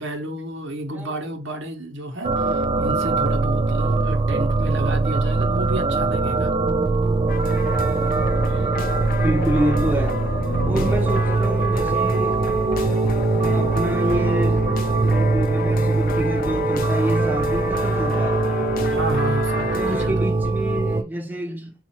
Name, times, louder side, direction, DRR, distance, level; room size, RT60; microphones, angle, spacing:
voice 1, 0.0-6.5 8.4-8.7 10.5-10.9 18.9-20.2, right 1 dB, 60° right, 0.9 m, -31 dB
sound 1, 2.2-21.0, right 3 dB, 25° right, 0.3 m, -22 dB
sound 2, 6.8-18.1, left 4 dB, 65° left, 0.9 m, -40 dB
sound 3, 7.3-20.1, left 4 dB, 45° left, 0.5 m, -31 dB
voice 2, 9.2-10.2 10.7-12.4 12.9-18.7 19.7-21.7, right 1 dB, 10° right, 0.7 m, -28 dB
4.1 x 2.4 x 4.2 m
head